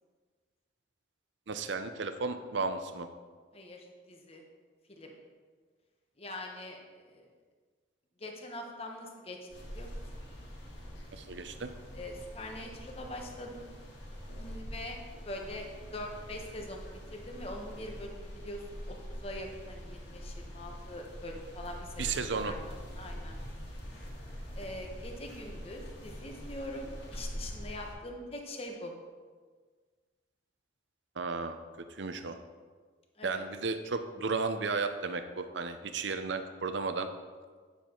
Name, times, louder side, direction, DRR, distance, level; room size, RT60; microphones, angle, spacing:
voice 1, 1.5-3.1 11.1-11.7 22.0-22.5 31.2-31.6 32.0-32.4 33.2-37.1, right 4 dB, 85° right, 9 dB, 0.6 m, -34 dB
voice 2, 3.5-4.4 4.9-5.2 6.2-7.3 8.2-10.0 11.9-13.7 14.4-15.0 15.2-15.7 15.9-23.4 24.5-28.9 33.2-33.4, left 1 dB, 35° left, 1 dB, 1.1 m, -43 dB
sound 1, 9.5-27.9, equal, 85° left, 2.2 m, -44 dB
9.3 x 7.0 x 4.5 m, 1.5 s
head